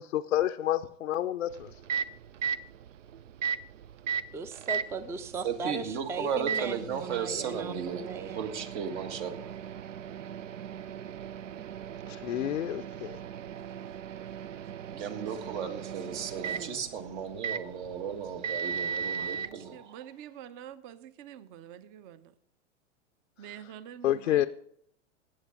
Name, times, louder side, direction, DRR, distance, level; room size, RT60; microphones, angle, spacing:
voice 1, 0.0-1.7 12.1-13.1 24.0-24.5, left 13 dB, 80° left, 8 dB, 0.6 m, -29 dB
Microwave oven, 1.5-19.5, right 7 dB, 80° right, 0.5 m, -37 dB
voice 2, 4.3-8.5, right 4 dB, 5° right, 13 dB, 0.4 m, -38 dB
voice 3, 5.4-8.1 8.3-9.4 14.9-19.9, right 7 dB, 60° right, 6 dB, 1.6 m, -35 dB
voice 4, 19.0-22.3 23.4-24.5, right 10 dB, 45° right, 15 dB, 0.8 m, -47 dB
17.0 x 7.7 x 3.6 m, 0.70 s
hypercardioid pair, 100°, 38 cm